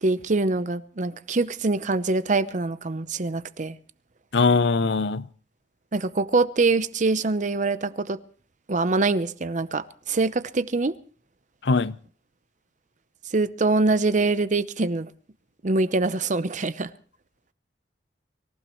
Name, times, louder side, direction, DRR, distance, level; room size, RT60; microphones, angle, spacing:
voice 1, 0.0-3.8 5.9-8.2 8.7-11.0 13.3-15.1 15.6-16.9, right 3 dB, 45° right, 0.7 m, -24 dB
voice 2, 4.3-5.3 11.6-11.9, left 4 dB, 65° left, 0.6 m, -21 dB
24.5 x 15.0 x 3.0 m
head